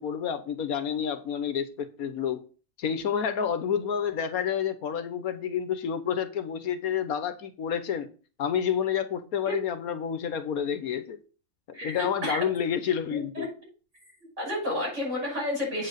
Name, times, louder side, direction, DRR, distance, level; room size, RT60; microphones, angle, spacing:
voice 1, 0.0-2.4 2.8-8.1 8.4-11.2 11.7-13.5, left 8 dB, 75° left, 1.4 m, -29 dB
voice 2, 13.1-13.4 14.4-15.9, left 1 dB, 50° right, 6.4 m, -31 dB
8.6 x 4.7 x 6.5 m
omnidirectional pair, 1.5 m